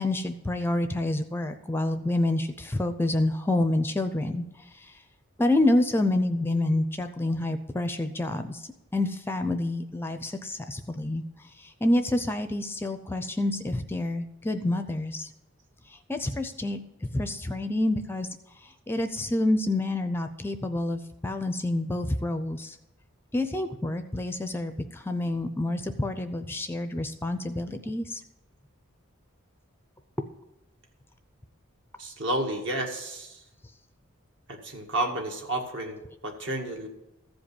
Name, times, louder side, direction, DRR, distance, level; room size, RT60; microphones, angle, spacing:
voice 1, 0.0-5.0 5.4-15.3 15.9-18.3 18.6-22.8 23.3-28.2, left 1 dB, 10° left, 8 dB, 0.5 m, -28 dB
voice 2, 32.0-33.4 34.5-36.9, right 1 dB, 60° right, 2 dB, 1.9 m, -31 dB
14.5 x 5.2 x 8.4 m, 0.93 s
head